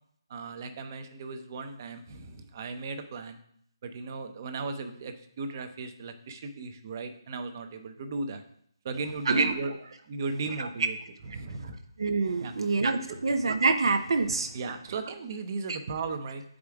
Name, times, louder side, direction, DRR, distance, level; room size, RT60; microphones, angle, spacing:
voice 1, 0.3-3.4 3.8-8.4 8.8-9.7 10.1-11.0 11.2-11.8 12.4-12.8 13.1-13.2 14.3-16.4, right 3 dB, 40° right, 8 dB, 0.7 m, -36 dB
voice 2, 12.0-14.5 15.7-15.8, right 4 dB, 70° right, 7 dB, 0.6 m, -26 dB
7.3 x 5.0 x 3.6 m, 0.70 s
hypercardioid pair, 160°, 3 cm